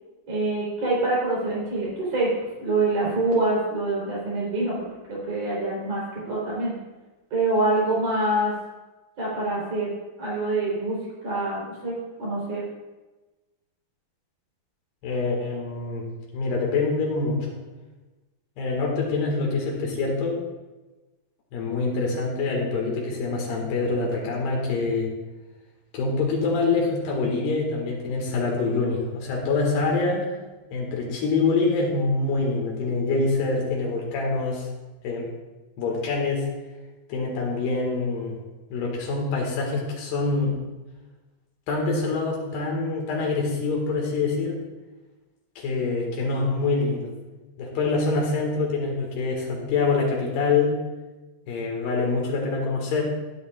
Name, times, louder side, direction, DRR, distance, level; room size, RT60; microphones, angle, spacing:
voice 1, 0.3-2.3 2.6-6.7 7.3-8.5 9.2-9.9 10.2-12.6, right 2 dB, 45° right, -5 dB, 4.6 m, -25 dB
voice 2, 15.0-16.1 16.3-17.5 18.6-20.4 21.5-25.1 25.9-30.3 30.7-34.7 35.0-35.3 35.8-36.5 37.1-38.4 38.7-40.6 41.7-44.6 45.6-47.1 47.6-50.7 51.5-53.0, left 3 dB, 85° left, -2 dB, 3.9 m, -25 dB
15.5 x 9.5 x 2.4 m, 1.2 s
omnidirectional pair, 4.6 m